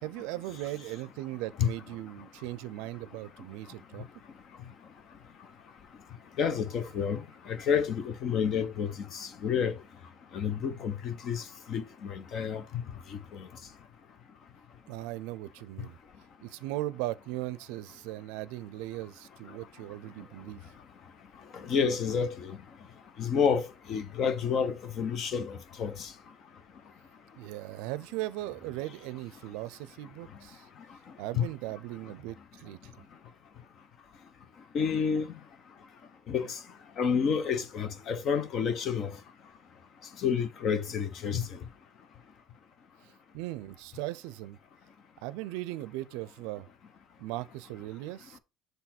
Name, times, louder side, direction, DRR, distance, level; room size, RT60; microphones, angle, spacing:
voice 1, 0.0-4.1 14.9-16.0 16.4-20.7 27.4-30.7 31.2-32.9 43.0-44.6 45.2-46.7 47.2-48.4, right 17 dB, 85° right, 0.4 m, -38 dB
voice 2, 6.4-9.7 10.3-12.6 13.1-13.5 21.5-22.6 23.2-26.1 31.3-31.5 34.7-35.3 36.3-36.6 37.0-39.1 40.2-41.6, left 7 dB, 40° left, 0.7 m, -29 dB
6.7 x 4.1 x 4.2 m
cardioid pair, 150°, 0 cm